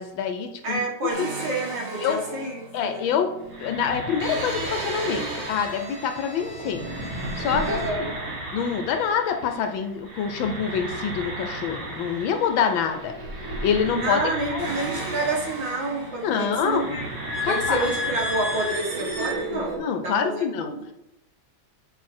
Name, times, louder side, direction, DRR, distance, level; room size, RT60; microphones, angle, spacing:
voice 1, 0.0-1.3 2.0-2.2 2.7-3.3 3.6-6.8 7.4-7.8 8.5-13.1 13.6-14.2 14.5-14.7 16.2-17.0 17.4-17.9 19.5-20.7, left 7 dB, 75° left, 6 dB, 1.4 m, -26 dB
voice 2, 0.6-3.1 7.7-8.2 13.9-17.1 17.4-20.9, right 2 dB, 65° right, -2 dB, 2.3 m, -29 dB
sound 1, 1.1-9.8 10.0-19.8, right 1 dB, 45° right, 1.7 m, -33 dB
7.7 x 4.7 x 4.3 m, 0.85 s
omnidirectional pair, 2.2 m